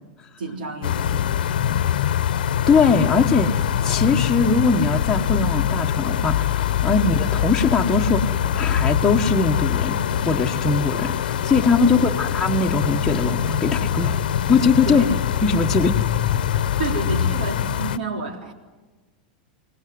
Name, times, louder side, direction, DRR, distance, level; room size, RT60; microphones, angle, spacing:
voice 1, 0.4-1.3 6.9-7.1 11.8-12.2 14.8-15.2 16.6-18.5, right 3 dB, 85° right, 6 dB, 3.6 m, -30 dB
sound 1, 0.8-18.0, left 9 dB, 85° left, 1.0 m, -23 dB
voice 2, 2.7-10.0 10.2-14.2 14.5-15.1 15.4-16.0, left 4 dB, 10° left, -2 dB, 1.3 m, -21 dB
sound 2, 10.6-16.9, left 12 dB, 55° left, 0.8 m, -35 dB
24.5 x 19.5 x 9.5 m, 1.2 s
supercardioid pair, 125°, 5 cm